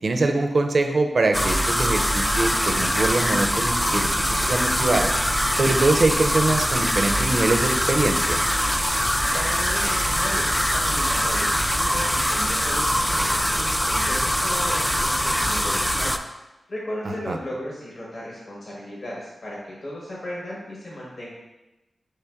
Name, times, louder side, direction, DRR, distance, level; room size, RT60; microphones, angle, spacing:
voice 1, 0.0-5.1 5.6-8.4 17.0-17.4, right 2 dB, 65° right, 5 dB, 0.5 m, -23 dB
sound 1, 1.3-16.2, equal, 5° left, 0.3 m, -23 dB
voice 2, 9.3-16.2 16.7-21.3, left 1 dB, 60° left, -5 dB, 1.2 m, -35 dB
4.4 x 3.3 x 3.5 m, 1.0 s
cardioid pair, 50°, 0 cm